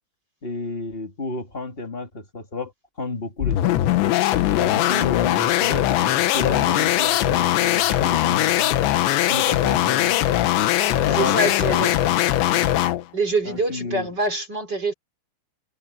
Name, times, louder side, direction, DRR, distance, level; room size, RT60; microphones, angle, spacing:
voice 1, 0.4-2.7 3.0-3.8 4.5-8.7 9.3-10.2 10.9-12.2 12.5-12.7 13.4-14.1, left 3 dB, 35° left, 0.9 m, -31 dB
sound 1, 3.4-13.1, left 13 dB, 70° left, 3.2 m, -20 dB
voice 2, 11.1-11.9 13.1-14.9, right 2 dB, 25° right, 3.7 m, -25 dB
omnidirectional pair, 5.8 m